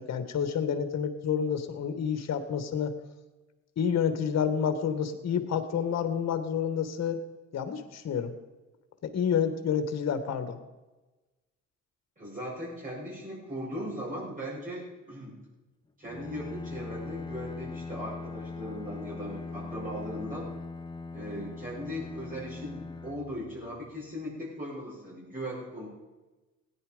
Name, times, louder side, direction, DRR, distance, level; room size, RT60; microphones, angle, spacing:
voice 1, 0.0-2.9 3.8-7.2 7.5-8.3 9.0-10.6, left 7 dB, 60° left, 9 dB, 1.7 m, -29 dB
voice 2, 12.2-15.4 16.0-20.5 21.1-25.9, equal, 25° right, -7 dB, 6.3 m, -38 dB
Bowed string instrument, 16.0-24.0, left 4 dB, 15° left, 1.1 m, -41 dB
17.0 x 10.5 x 5.2 m, 1.1 s
cardioid pair, 90°, 30 cm